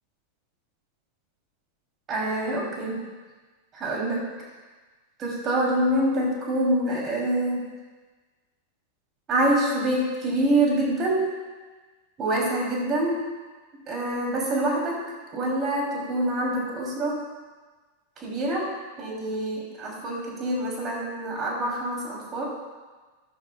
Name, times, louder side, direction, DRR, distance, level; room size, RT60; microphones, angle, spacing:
voice 1, 2.1-3.0 3.7-4.2 5.2-7.6 9.3-11.3 12.2-13.2 13.9-15.0 15.3-17.2 18.2-18.7 19.0-22.4, right 1 dB, 30° right, -2 dB, 3.2 m, -26 dB
13.0 x 12.5 x 2.4 m, 1.3 s
figure-of-eight pair, 90°, 0 cm